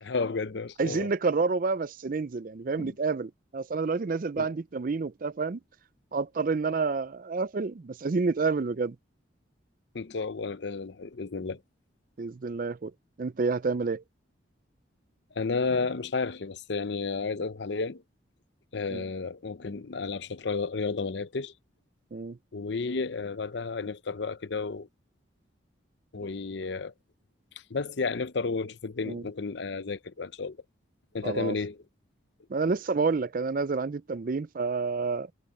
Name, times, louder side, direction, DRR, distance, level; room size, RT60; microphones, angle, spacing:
voice 1, 0.0-1.1 2.8-2.9 4.4-4.5 9.9-11.6 15.3-18.0 18.7-21.5 22.5-24.9 26.1-26.9 27.7-30.6 31.1-31.8, left 4 dB, 65° left, 0.7 m, -32 dB
voice 2, 0.8-5.6 6.1-9.0 12.2-12.9 13.2-14.0 18.9-19.0 22.1-22.4 29.1-29.2 31.2-31.5 32.5-35.3, right 4 dB, 45° right, 0.4 m, -29 dB
head